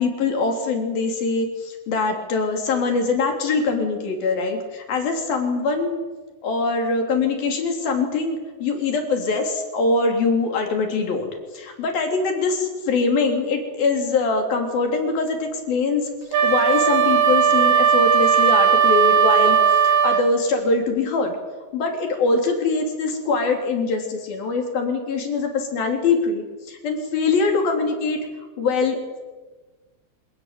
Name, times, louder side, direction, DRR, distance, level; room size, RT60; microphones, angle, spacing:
voice 1, 0.0-6.0 6.4-16.1 16.4-19.6 19.8-21.4 21.7-28.2 28.6-29.2, left 4 dB, 90° left, 3 dB, 5.5 m, -23 dB
Wind instrument woodwind instrument, 16.3-20.3, right 7 dB, 70° right, 3.5 m, -17 dB
26.0 x 18.0 x 9.3 m, 1.3 s
omnidirectional pair, 4.0 m